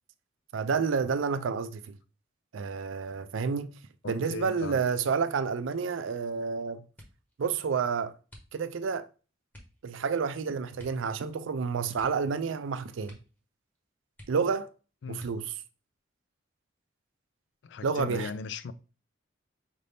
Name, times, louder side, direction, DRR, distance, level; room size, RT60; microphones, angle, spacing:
voice 1, 0.5-1.9 2.5-3.7 4.0-6.8 7.4-8.1 8.5-9.1 9.8-13.2 14.3-14.7 15.1-15.5 17.8-18.3, right 5 dB, 85° right, 0.4 m, -29 dB
voice 2, 4.0-4.8 15.0-15.2 17.6-18.7, left 4 dB, 65° left, 0.3 m, -37 dB
sound 1, 6.9-7.4 8.2-8.9 9.5-9.8 10.7-11.1 11.4-11.5 11.9-12.7 13.0-13.4 13.7-13.8 14.1-14.7 15.1-15.7 16.4-17.0 17.4-17.8, left 1 dB, 10° left, 0.9 m, -53 dB
5.1 x 2.6 x 3.3 m
head